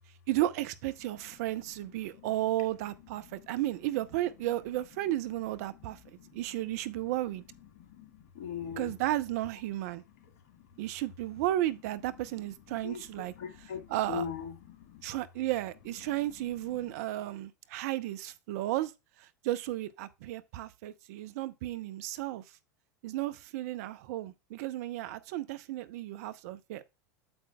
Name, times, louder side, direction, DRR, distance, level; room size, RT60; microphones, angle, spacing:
voice 1, 0.3-6.0 6.3-7.4 8.8-10.0 10.8-13.3 13.9-14.2 15.0-18.9 19.2-22.4 23.0-26.8, right 15 dB, 60° right, 0.6 m, -33 dB
voice 2, 1.0-3.8 4.2-10.6 11.5-15.0 15.8-16.9, left 7 dB, 60° left, 1.7 m, -46 dB
8.7 x 7.4 x 2.2 m
hypercardioid pair, 85°, 10 cm